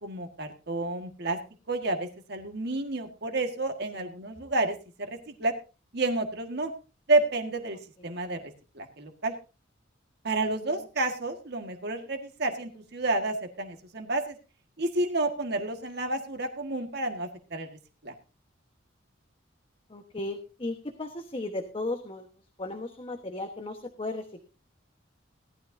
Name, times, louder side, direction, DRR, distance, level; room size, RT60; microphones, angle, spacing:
voice 1, 0.0-1.4 1.7-5.5 5.9-6.7 7.1-7.8 8.0-8.4 8.7-9.3 10.2-14.4 14.8-17.7 18.0-18.1, right 2 dB, 55° right, 5 dB, 1.7 m, -30 dB
voice 2, 19.9-22.3 22.6-24.4, left 2 dB, 30° left, 5 dB, 1.2 m, -36 dB
18.0 x 12.5 x 2.7 m, 0.32 s
head